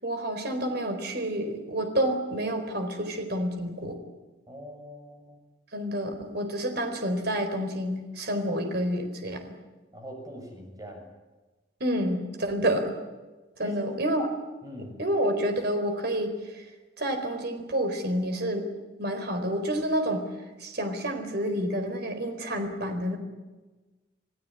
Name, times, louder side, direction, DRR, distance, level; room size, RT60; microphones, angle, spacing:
voice 1, 0.0-4.0 5.7-9.4 11.8-12.9 13.6-14.3 14.8-16.6 17.0-18.7 19.0-20.2 20.6-23.2, equal, 60° right, 6 dB, 4.2 m, -29 dB
voice 2, 4.5-5.4 9.9-11.1 13.6-14.0 14.6-15.0, equal, 20° right, 3 dB, 6.8 m, -42 dB
28.0 x 16.5 x 9.9 m, 1.2 s
head